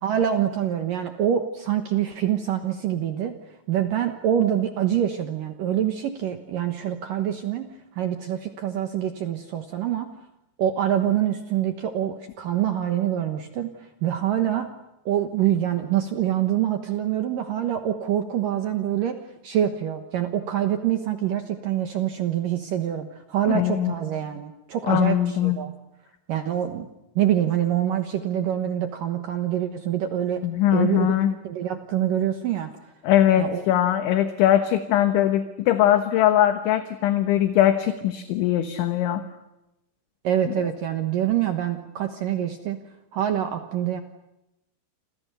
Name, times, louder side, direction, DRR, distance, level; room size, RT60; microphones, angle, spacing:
voice 1, 0.0-3.3 3.7-7.7 8.0-10.1 10.6-14.7 15.1-25.7 26.3-26.9 27.2-30.5 30.7-31.1 31.4-32.7 33.4-33.6 40.2-42.8 43.1-44.0, right 10 dB, 80° right, 7 dB, 1.9 m, -25 dB
voice 2, 23.5-23.9 24.9-25.6 30.4-31.4 33.0-39.2, left 12 dB, 75° left, 8 dB, 3.4 m, -21 dB
28.5 x 27.5 x 6.9 m, 0.92 s
omnidirectional pair, 5.9 m